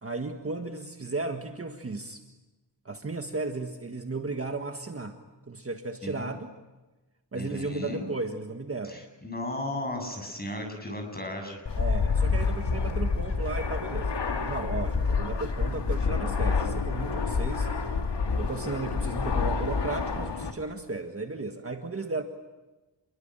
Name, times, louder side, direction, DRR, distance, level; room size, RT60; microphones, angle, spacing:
voice 1, 0.0-2.2 2.9-5.2 5.5-6.5 7.3-9.0 11.8-17.7 18.4-22.2, right 3 dB, 30° right, 5 dB, 1.7 m, -35 dB
voice 2, 7.3-8.1 8.9-11.6, left 1 dB, 20° left, 3 dB, 7.3 m, -35 dB
Fixed-wing aircraft airplane, 11.7-20.5, left 4 dB, 65° left, 2.5 m, -28 dB
29.0 x 22.5 x 9.1 m, 1.1 s
wide cardioid pair, 180°, 45 cm